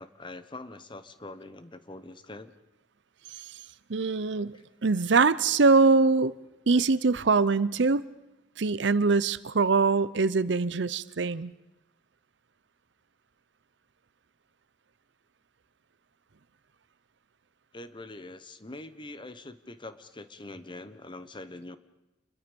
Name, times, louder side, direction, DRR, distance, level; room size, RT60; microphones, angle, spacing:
voice 1, 0.0-2.5 4.5-4.6 17.7-21.8, left 2 dB, 25° left, 12 dB, 1.1 m, -44 dB
voice 2, 3.9-6.3 6.7-8.0 8.6-11.5, right 4 dB, 70° right, 17 dB, 0.7 m, -23 dB
28.5 x 22.0 x 5.3 m, 0.96 s
head